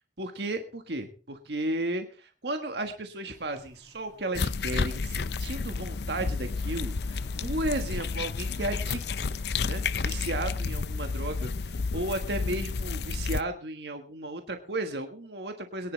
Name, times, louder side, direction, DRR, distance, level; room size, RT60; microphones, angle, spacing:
voice 1, 0.2-9.0 9.6-15.9, right 1 dB, 70° right, 5 dB, 1.5 m, -34 dB
sound 1, 3.3-9.9, left 1 dB, 20° left, 2.2 m, -54 dB
sound 2, 4.3-13.4, left 4 dB, 65° left, 0.5 m, -31 dB
22.0 x 10.5 x 3.3 m, 0.36 s
head